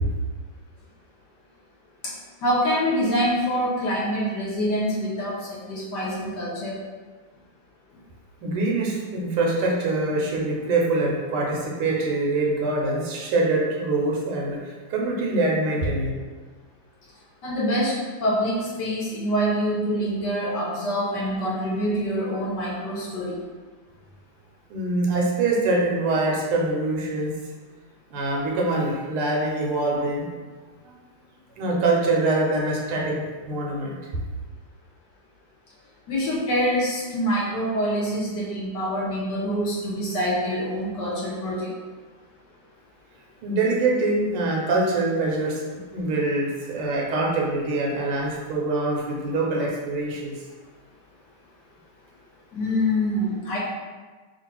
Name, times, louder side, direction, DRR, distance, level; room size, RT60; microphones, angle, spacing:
voice 1, 2.4-6.8 17.4-17.9 18.2-23.3 36.1-41.7 52.5-53.6, equal, 65° left, -5 dB, 1.3 m, -25 dB
voice 2, 8.4-16.1 24.7-27.3 28.1-30.2 31.6-33.9 43.4-45.6 45.9-50.3, right 2 dB, 85° right, -2 dB, 1.7 m, -24 dB
3.8 x 2.4 x 4.4 m, 1.4 s
omnidirectional pair, 2.4 m